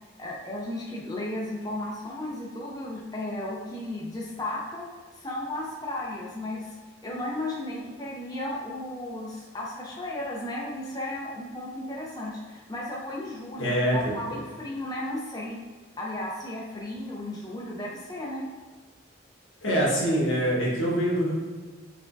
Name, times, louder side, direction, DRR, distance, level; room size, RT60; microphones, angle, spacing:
voice 1, 0.2-4.9 5.2-6.7 7.0-15.6 16.0-18.5, left 1 dB, 20° left, -4 dB, 0.5 m, -34 dB
voice 2, 13.6-14.1 19.6-21.3, equal, 85° left, -4 dB, 1.3 m, -24 dB
4.6 x 3.4 x 2.6 m, 1.4 s
head